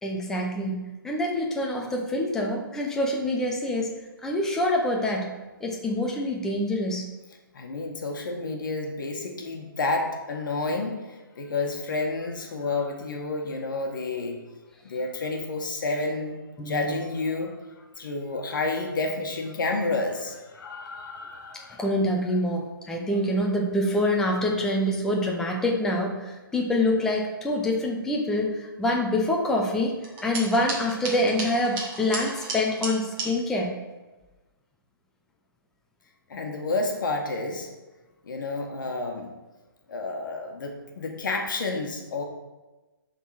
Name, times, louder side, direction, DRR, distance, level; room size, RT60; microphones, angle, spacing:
voice 1, 0.0-3.9 4.2-5.3 5.6-7.1 16.6-17.0 21.8-29.9 30.2-33.7, left 1 dB, 5° left, 0 dB, 0.6 m, -26 dB
voice 2, 7.5-14.4 14.8-21.8 36.3-37.7 38.2-39.3 39.9-42.2, left 3 dB, 60° left, 2 dB, 1.3 m, -30 dB
sound 1, 30.0-33.3, right 2 dB, 20° right, 1.2 m, -34 dB
10.5 x 3.8 x 4.2 m, 1.1 s
hypercardioid pair, 160°, 12 cm